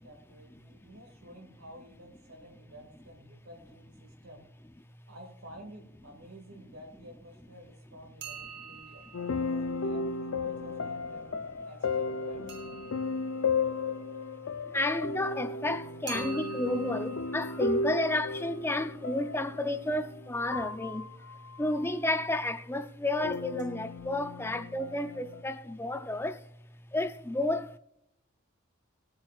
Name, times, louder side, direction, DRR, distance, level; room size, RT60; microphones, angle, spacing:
voice 1, 0.0-4.5 5.1-11.3 11.7-12.5, equal, 90° right, 2.0 m, -51 dB
sound 1, 8.2-10.9 12.5-15.2 16.1-19.9 23.3-23.7 24.0-24.1 24.8-24.9 25.1-25.2, right 4 dB, 55° right, 1.5 m, -48 dB
sound 2, 9.1-21.9 23.2-25.4, left 3 dB, 75° left, 0.5 m, -34 dB
voice 2, 14.6-21.3 21.6-26.5 26.9-27.8, left 1 dB, 10° left, 0.5 m, -31 dB
19.5 x 8.7 x 2.4 m
head